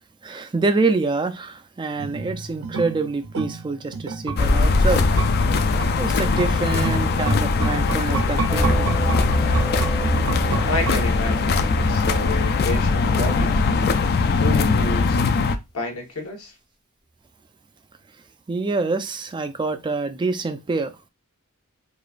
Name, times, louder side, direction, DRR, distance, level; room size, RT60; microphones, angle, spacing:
voice 1, 0.2-5.2 5.9-9.0 18.5-20.9, right 3 dB, 20° right, 0.3 m, -26 dB
sound 1, 2.0-11.5 11.8-11.9, right 4 dB, 70° right, 0.6 m, -31 dB
sound 2, 4.4-15.6, left 4 dB, 50° left, 0.4 m, -21 dB
sound 3, 8.5-15.0, right 2 dB, 20° left, 0.7 m, -29 dB
voice 2, 10.6-13.5 14.4-15.2 15.7-16.5, left 2 dB, 75° left, 1.1 m, -30 dB
4.9 x 2.3 x 2.4 m
head